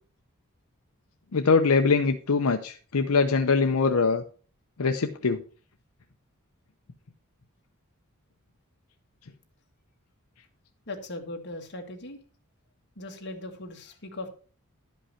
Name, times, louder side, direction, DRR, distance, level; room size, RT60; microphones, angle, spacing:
voice 1, 1.3-4.2 4.8-5.4, left 4 dB, 80° left, 6 dB, 0.7 m, -23 dB
voice 2, 10.9-12.2 13.0-14.3, left 2 dB, 50° left, 3 dB, 1.7 m, -39 dB
11.5 x 5.4 x 5.6 m, 0.40 s
head